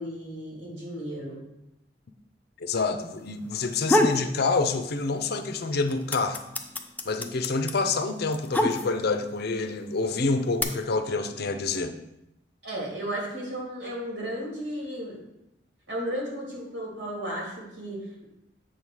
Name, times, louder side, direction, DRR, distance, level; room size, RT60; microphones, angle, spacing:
voice 1, 0.0-1.4 12.6-15.2 15.9-18.2, equal, 80° right, -4 dB, 3.2 m, -34 dB
voice 2, 2.6-6.4 7.0-12.0, left 3 dB, 60° left, 8 dB, 0.6 m, -27 dB
sound 1, 3.6-4.3 4.7-5.4 5.6-9.2 10.0-10.6, left 1 dB, 10° left, 0.5 m, -25 dB
7.7 x 3.7 x 6.3 m, 0.87 s
head